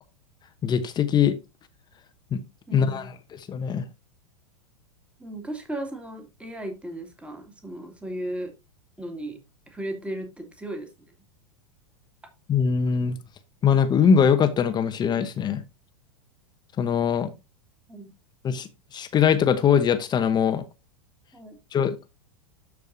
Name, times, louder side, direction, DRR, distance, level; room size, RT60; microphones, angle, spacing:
voice 1, 0.6-1.4 2.3-2.4 2.7-3.0 3.5-3.8 12.5-13.2 13.6-15.6 16.8-17.3 18.4-20.6 21.7-22.0, left 7 dB, 25° left, 1.0 m, -22 dB
voice 2, 2.7-3.2 5.2-8.5 9.0-9.4 9.7-11.2 17.9-18.1 21.3-21.6, right 1 dB, 5° right, 2.3 m, -36 dB
13.0 x 4.8 x 2.6 m
hypercardioid pair, 95°, 17 cm